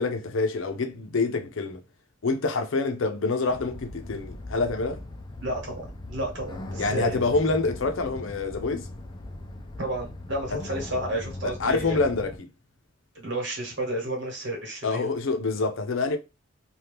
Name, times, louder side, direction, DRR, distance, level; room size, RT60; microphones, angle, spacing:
voice 1, 0.0-1.8 2.2-5.0 6.8-8.9 11.4-12.5 14.8-16.2, left 3 dB, 70° left, 0.6 m, -26 dB
sound 1, 3.5-12.4, left 1 dB, 20° left, 0.3 m, -39 dB
voice 2, 5.4-5.8 6.1-7.2 9.8-12.0 13.1-15.0, right 1 dB, 55° right, 1.3 m, -31 dB
2.8 x 2.3 x 3.3 m
head